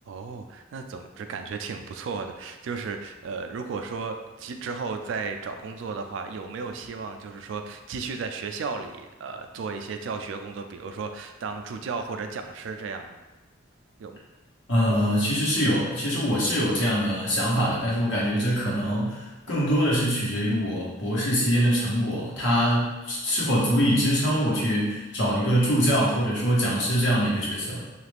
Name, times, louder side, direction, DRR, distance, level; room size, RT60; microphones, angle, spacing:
voice 1, 0.1-13.2 14.0-14.2 14.9-15.0, right 4 dB, 70° right, 6 dB, 0.3 m, -34 dB
voice 2, 14.7-27.8, equal, 70° left, -5 dB, 1.0 m, -24 dB
3.1 x 2.4 x 3.3 m, 1.1 s
head